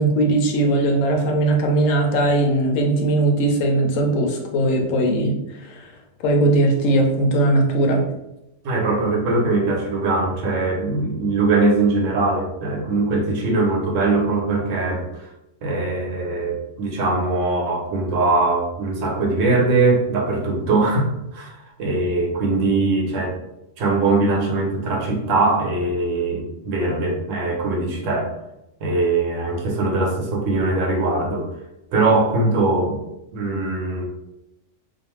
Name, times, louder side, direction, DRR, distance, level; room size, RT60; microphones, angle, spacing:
voice 1, 0.0-5.9 6.2-8.0, right 2 dB, 80° left, 2 dB, 1.0 m, -19 dB
voice 2, 8.6-15.3 15.6-23.3 23.8-28.3 28.8-31.5 31.9-33.0 33.3-34.0, right 3 dB, 75° right, 0 dB, 1.0 m, -21 dB
2.5 x 2.3 x 3.0 m, 0.89 s
omnidirectional pair, 1.3 m